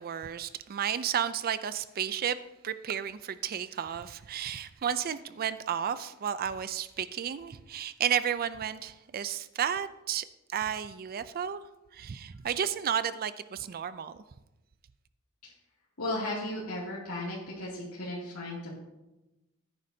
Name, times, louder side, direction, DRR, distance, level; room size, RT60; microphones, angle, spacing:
voice 1, 0.0-2.4 2.6-11.6 11.9-14.1, right 8 dB, 45° right, 14 dB, 0.4 m, -32 dB
voice 2, 16.0-18.7, left 1 dB, 90° left, -6 dB, 2.5 m, -35 dB
15.5 x 9.4 x 2.8 m, 1.0 s
head